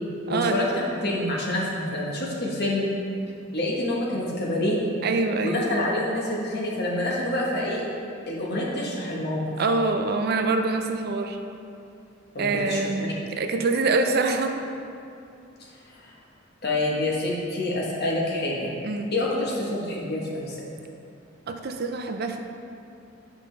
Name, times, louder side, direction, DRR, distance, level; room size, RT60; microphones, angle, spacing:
voice 1, 0.3-0.7 1.0-2.9 3.5-4.8 5.4-7.8 8.3-9.4 12.3-12.8 15.6-16.1 16.6-18.7 19.1-20.6, left 1 dB, 50° left, -4 dB, 1.2 m, -27 dB
voice 2, 5.0-5.6 9.6-11.4 12.4-13.0 13.3-14.6 18.8-19.1 21.5-22.4, right 3 dB, 50° right, 5 dB, 0.4 m, -25 dB
8.3 x 5.2 x 3.3 m, 2.5 s
head